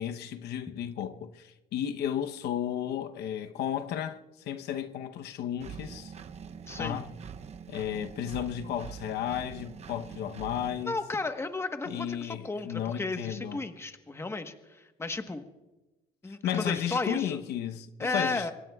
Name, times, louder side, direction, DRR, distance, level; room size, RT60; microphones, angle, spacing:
voice 1, 0.0-6.1 6.8-7.1 7.7-11.0 11.9-13.6 16.3-18.5, left 10 dB, 75° left, 0.9 m, -33 dB
Engine, 5.6-10.8, right 7 dB, 40° right, 0.7 m, -44 dB
voice 2, 6.7-7.0 10.8-15.4 16.2-17.4 18.0-18.5, left 3 dB, 15° left, 1.2 m, -34 dB
25.0 x 23.0 x 2.4 m
cardioid pair, 110°, 17 cm